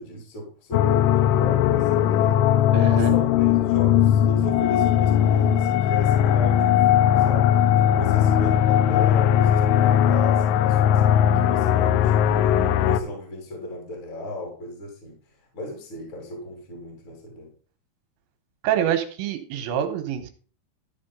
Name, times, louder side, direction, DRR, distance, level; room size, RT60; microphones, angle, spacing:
voice 1, 0.0-2.4 2.8-11.0 11.3-15.2 15.5-17.5, left 1 dB, 30° left, 0 dB, 2.8 m, -36 dB
sound 1, 0.7-13.0, left 10 dB, 85° left, 3.1 m, -19 dB
voice 2, 2.7-3.2 18.6-20.3, right 9 dB, 75° right, 6 dB, 3.3 m, -26 dB
13.5 x 5.0 x 5.3 m, 0.41 s
omnidirectional pair, 5.5 m